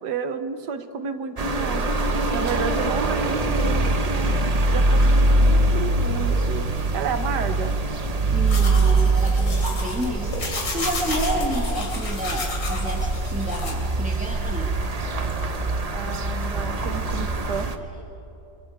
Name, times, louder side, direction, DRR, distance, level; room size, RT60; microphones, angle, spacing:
voice 1, 0.0-1.9 2.3-4.3 4.7-6.7 6.9-7.8 15.9-17.7, right 6 dB, 70° right, 9 dB, 1.6 m, -31 dB
sound 1, 1.4-17.8, right 2 dB, 30° right, 0.7 m, -23 dB
voice 2, 8.3-14.7 17.8-17.9, equal, 5° right, -1 dB, 1.2 m, -30 dB
sound 2, 8.5-13.7, left 2 dB, 90° left, 3.5 m, -32 dB
25.5 x 24.0 x 4.9 m, 2.9 s
omnidirectional pair, 1.9 m